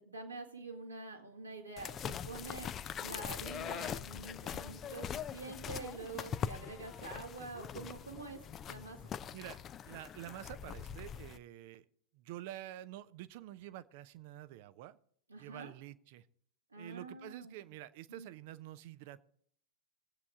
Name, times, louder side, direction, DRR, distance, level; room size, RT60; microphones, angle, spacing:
voice 1, 0.0-8.4 8.7-9.0 15.3-15.7 16.7-17.6 18.1-18.3, right 3 dB, 85° right, -1 dB, 2.3 m, -46 dB
sound 1, 1.8-11.4, left 8 dB, 25° left, 0.5 m, -42 dB
voice 2, 9.3-11.8 12.1-15.0 15.4-16.3 16.8-19.2, right 14 dB, 50° right, 15 dB, 0.6 m, -48 dB
21.0 x 8.3 x 3.7 m, 0.64 s
figure-of-eight pair, 90°, 0 cm